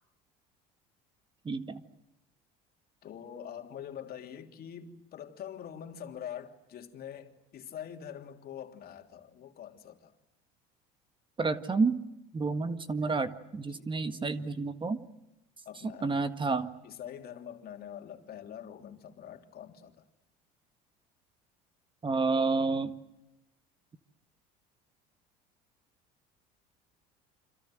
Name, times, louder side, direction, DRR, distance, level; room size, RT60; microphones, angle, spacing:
voice 1, 1.4-1.8 11.4-12.0 12.3-15.0 16.0-16.7 22.0-22.9, right 4 dB, 25° right, 1.7 m, -29 dB
voice 2, 3.0-10.1 13.7-13.9 15.6-16.3 16.8-20.0, left 9 dB, 50° left, 3.2 m, -44 dB
28.5 x 26.0 x 7.9 m
hypercardioid pair, 80°, 20 cm